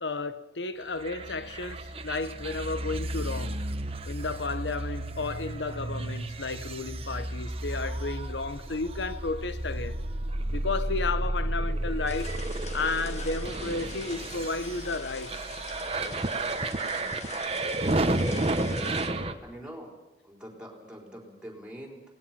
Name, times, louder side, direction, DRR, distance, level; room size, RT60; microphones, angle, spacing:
voice 1, 0.0-3.6 4.0-10.0 10.5-12.3 12.7-15.4, left 3 dB, 80° left, 1.0 m, -33 dB
sound 1, 1.0-19.3, right 2 dB, 35° right, 1.1 m, -32 dB
sound 2, 12.1-19.1, left 4 dB, 40° left, 2.0 m, -44 dB
voice 2, 19.4-20.0 20.2-22.0, equal, 5° right, 4.1 m, -45 dB
28.0 x 19.0 x 5.9 m
head